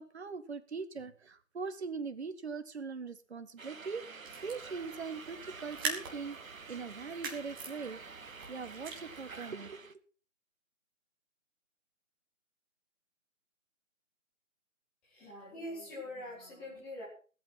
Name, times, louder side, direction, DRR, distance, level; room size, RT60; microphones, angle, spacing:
voice 1, 0.0-9.9, right 5 dB, 50° right, 10 dB, 1.6 m, -41 dB
sound 1, 3.6-9.9, right 4 dB, 75° right, 1.4 m, -49 dB
sound 2, 4.2-9.5, right 4 dB, 15° right, 2.0 m, -43 dB
voice 2, 15.0-17.1, left 1 dB, ahead, -5 dB, 0.9 m, -44 dB
18.0 x 8.5 x 5.8 m, 0.39 s
figure-of-eight pair, 160°, 41 cm